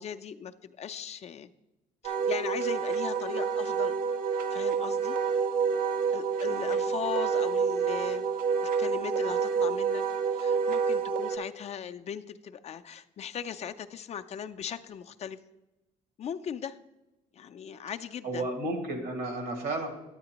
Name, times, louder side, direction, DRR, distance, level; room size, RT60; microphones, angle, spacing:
voice 1, 0.0-1.5 2.0-3.9 4.5-5.2 6.1-8.3 8.6-10.0 10.3-15.4 16.2-16.8 17.3-18.5, left 8 dB, 40° left, 10 dB, 0.4 m, -38 dB
Wind instrument woodwind instrument, 2.0-11.4, right 5 dB, 55° right, 0.7 m, -28 dB
voice 2, 6.5-6.8 18.2-19.9, right 2 dB, 90° right, 3 dB, 1.9 m, -33 dB
9.5 x 9.0 x 2.9 m, 0.98 s
cardioid pair, 110°, 17 cm